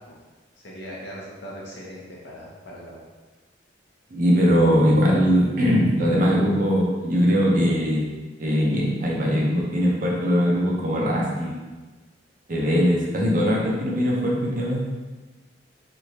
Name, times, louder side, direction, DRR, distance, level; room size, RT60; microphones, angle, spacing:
voice 1, 0.6-3.0, equal, 65° left, -4 dB, 0.8 m, -39 dB
voice 2, 4.1-8.1 8.4-11.6 12.5-14.8, equal, 45° right, -3 dB, 0.6 m, -21 dB
3.2 x 2.5 x 2.8 m, 1.3 s
head